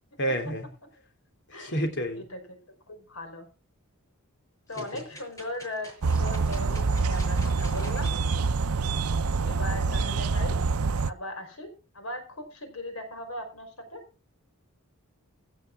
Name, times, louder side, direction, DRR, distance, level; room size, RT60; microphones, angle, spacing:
voice 1, 0.2-0.7 1.5-2.2 4.8-5.0, equal, 55° left, 5 dB, 3.2 m, -30 dB
voice 2, 1.5-2.6 2.9-3.5 4.7-8.1 9.4-10.6 11.1-11.7 11.9-14.0, left 1 dB, 75° left, 5 dB, 5.0 m, -38 dB
sound 1, 4.7-8.4 8.9-9.0, equal, 15° left, 6.1 m, -47 dB
sound 2, 6.0-11.1, right 4 dB, 80° right, 0.6 m, -26 dB
16.5 x 6.7 x 6.1 m, 0.34 s
head